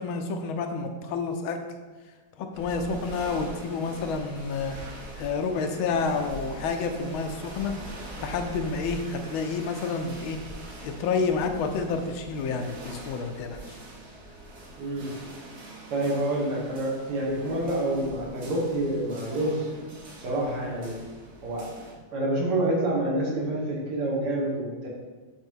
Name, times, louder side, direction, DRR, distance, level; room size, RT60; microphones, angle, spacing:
voice 1, 0.0-1.6 2.4-4.7 5.2-7.7 8.2-10.4 10.8-13.8, left 4 dB, 75° left, 6 dB, 1.3 m, -29 dB
sound 1, 2.5-21.9, right 1 dB, 45° right, 1.0 m, -43 dB
voice 2, 14.8-15.1 15.9-19.7 20.2-21.0 21.4-21.7 22.1-24.9, right 1 dB, 80° right, -3 dB, 2.5 m, -27 dB
7.1 x 3.0 x 5.4 m, 1.4 s
omnidirectional pair, 2.4 m